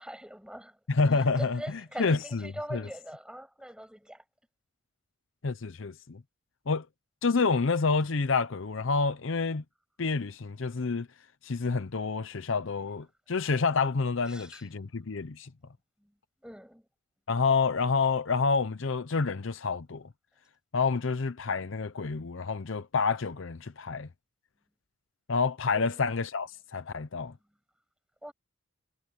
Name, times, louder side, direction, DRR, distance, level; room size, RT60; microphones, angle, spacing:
voice 1, 0.0-0.8 1.1-4.2 14.3-14.6 16.0-16.1 16.4-16.8 25.7-26.1 28.2-28.3, equal, 5° right, 7.5 m, -43 dB
voice 2, 0.9-2.8 5.4-6.2 6.7-6.9 7.2-9.6 10.0-11.1 11.4-15.5 17.3-20.1 20.7-24.1 25.3-27.3, left 4 dB, 65° left, 0.7 m, -28 dB
head